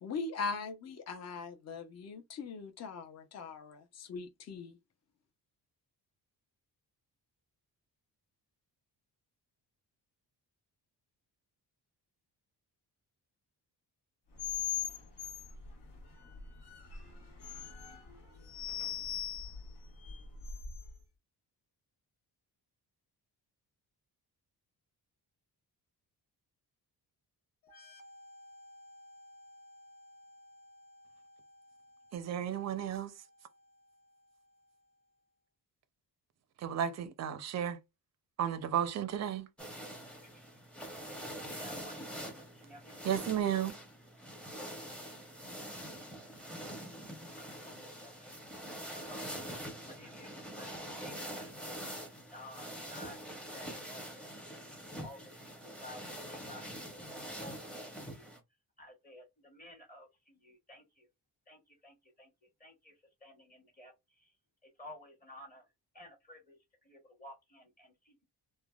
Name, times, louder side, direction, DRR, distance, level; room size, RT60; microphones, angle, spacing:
voice 1, 0.0-4.8, left 4 dB, 40° left, 0.6 m, -40 dB
sound 1, 14.3-21.0, left 9 dB, 80° left, 1.2 m, -41 dB
sound 2, 27.6-35.1, left 1 dB, 60° left, 1.0 m, -58 dB
voice 2, 32.1-33.1 36.6-37.8 38.4-39.5 43.0-43.7, right 9 dB, 45° right, 0.4 m, -33 dB
sound 3, 39.6-58.4, equal, 5° left, 0.6 m, -45 dB
voice 3, 40.2-40.6 41.4-43.1 45.8-45.9 47.0-48.5 48.8-51.8 52.3-54.3 55.0-58.3 58.8-61.1 61.5-64.3 64.6-65.7 65.9-68.2, left 1 dB, 20° left, 1.0 m, -54 dB
3.3 x 2.1 x 2.2 m
wide cardioid pair, 145°, 40 cm